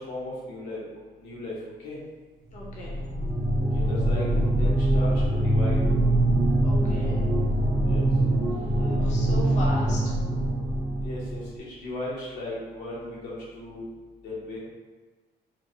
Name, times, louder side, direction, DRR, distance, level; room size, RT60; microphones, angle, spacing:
voice 1, 0.0-2.0 3.7-5.8 7.9-8.1 11.0-13.8 14.2-14.6, left 2 dB, 90° left, -6 dB, 0.9 m, -36 dB
voice 2, 2.5-3.0 6.6-7.2 8.8-10.1, left 1 dB, 45° left, -4 dB, 0.6 m, -36 dB
sound 1, 2.5-11.5, right 1 dB, 30° right, 0.7 m, -24 dB
2.8 x 2.0 x 2.7 m, 1.3 s
cardioid pair, 110°, 17 cm